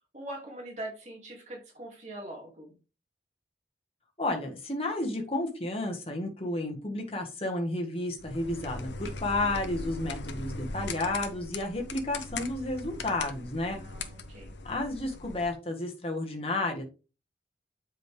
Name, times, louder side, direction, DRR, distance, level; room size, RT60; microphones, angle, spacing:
voice 1, 0.1-2.8 13.7-14.5, right 1 dB, 40° right, -1 dB, 2.6 m, -42 dB
voice 2, 4.2-13.8 14.6-16.8, left 2 dB, 30° left, 2 dB, 1.7 m, -32 dB
sound 1, 8.2-15.5, left 3 dB, 90° left, 1.0 m, -39 dB
7.6 x 5.2 x 3.4 m, 0.32 s
head